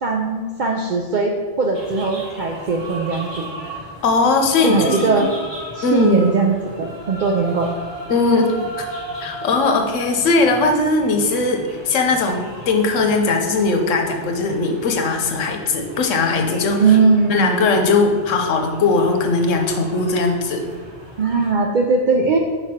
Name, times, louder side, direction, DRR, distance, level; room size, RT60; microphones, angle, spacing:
voice 1, 0.0-3.5 4.6-5.3 5.7-7.7 16.8-17.7 21.2-22.4, right 4 dB, 65° right, 1 dB, 0.5 m, -19 dB
sound 1, 1.7-21.5, right 1 dB, 25° right, 1.0 m, -36 dB
voice 2, 4.0-5.2 5.8-6.2 8.1-8.9 9.2-17.0 17.3-20.6, left 3 dB, 90° left, 4 dB, 1.1 m, -19 dB
4.9 x 4.2 x 4.9 m, 1.5 s
omnidirectional pair, 1.3 m